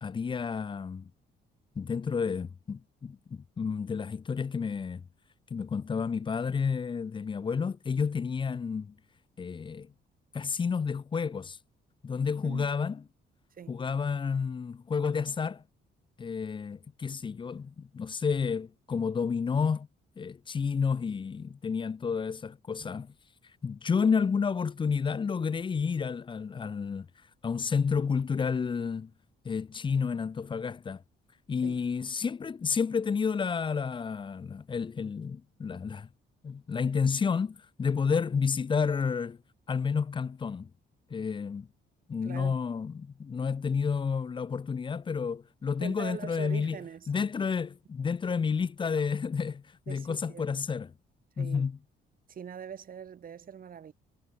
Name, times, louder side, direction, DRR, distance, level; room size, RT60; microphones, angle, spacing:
voice 1, 0.0-1.1 1.8-5.0 5.5-8.9 9.4-9.9 10.3-11.6 12.0-13.0 13.7-15.6 16.2-19.9 20.2-23.1 23.6-27.1 27.4-29.1 29.4-31.0 31.5-36.1 36.4-39.4 39.7-40.7 41.1-41.7 42.1-46.8 47.1-50.9 51.4-51.8, left 5 dB, 25° left, 0.4 m, -30 dB
voice 2, 12.4-12.7 13.5-13.8 22.8-22.9 31.6-31.8 42.2-42.6 45.8-47.1 49.9-50.4 51.4-51.7 52.3-53.9, right 8 dB, 45° right, 1.4 m, -42 dB
cardioid pair, 90°, 20 cm